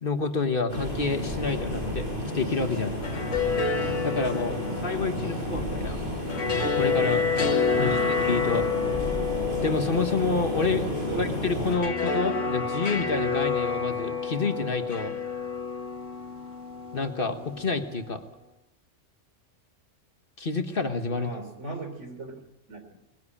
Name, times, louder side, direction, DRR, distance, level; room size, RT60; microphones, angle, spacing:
voice 1, 0.0-2.9 4.0-6.0 6.8-7.2 7.8-8.7 9.6-10.9 11.2-15.1 16.9-18.2 20.4-21.3, left 4 dB, 45° left, 7 dB, 1.5 m, -28 dB
sound 1, 0.7-11.7, equal, 45° right, 7.6 m, -32 dB
sound 2, 2.9-18.0, left 5 dB, 75° left, 1.9 m, -29 dB
voice 2, 7.7-8.2 11.1-11.2 21.1-22.3 22.7-22.9, right 3 dB, 70° right, 5 dB, 3.6 m, -38 dB
21.0 x 15.5 x 8.6 m, 0.90 s
omnidirectional pair, 1.3 m